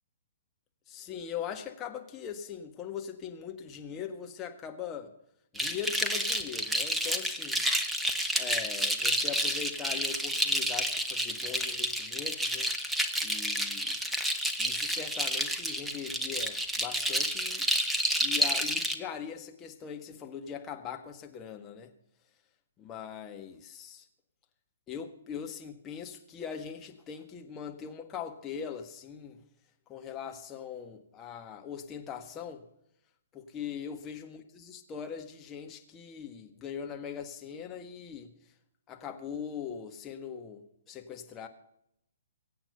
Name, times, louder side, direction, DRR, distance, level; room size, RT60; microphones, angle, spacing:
voice 1, 0.9-5.1 5.5-7.7 8.4-12.7 13.0-14.0 14.6-17.7 18.2-21.9 22.8-24.1 24.9-29.4 29.9-32.6 33.3-38.3 38.9-41.5, left 7 dB, 20° left, 4 dB, 1.7 m, -41 dB
sound 1, 5.6-18.9, right 1 dB, 5° right, 1.1 m, -30 dB
23.5 x 8.8 x 5.5 m, 0.76 s
figure-of-eight pair, 125°, 0 cm